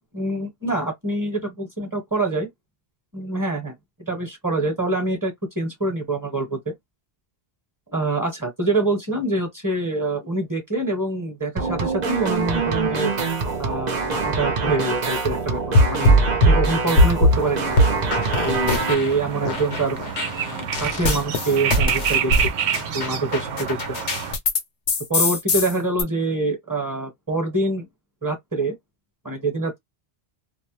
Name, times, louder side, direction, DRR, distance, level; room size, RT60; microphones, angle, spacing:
voice 1, 0.1-2.5 3.1-3.7 4.0-6.7 7.9-13.1 13.6-16.2 16.4-17.8 18.3-20.0 20.5-22.3 22.9-24.0 25.1-27.9 28.2-28.8 29.2-29.8, right 2 dB, 20° right, 1.0 m, -25 dB
sound 1, 11.6-18.9, right 4 dB, 50° right, 0.7 m, -25 dB
sound 2, 15.7-17.4 17.8-19.2 19.4-24.6 24.9-26.0, left 1 dB, 80° left, 1.1 m, -20 dB
sound 3, 17.3-24.4, right 8 dB, 85° right, 0.9 m, -28 dB
2.5 x 2.0 x 3.0 m
omnidirectional pair, 1.1 m